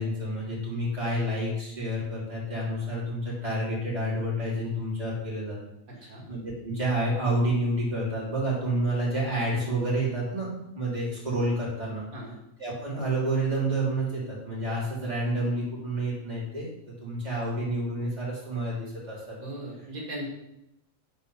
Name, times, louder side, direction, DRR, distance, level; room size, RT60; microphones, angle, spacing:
voice 1, 0.0-5.6 6.0-10.5 10.7-12.0 12.6-16.7 17.0-19.3, right 1 dB, 30° right, -7 dB, 3.4 m, -29 dB
voice 2, 19.4-20.3, right 1 dB, 90° right, -2 dB, 2.1 m, -38 dB
8.1 x 4.4 x 5.6 m, 0.85 s
omnidirectional pair, 1.5 m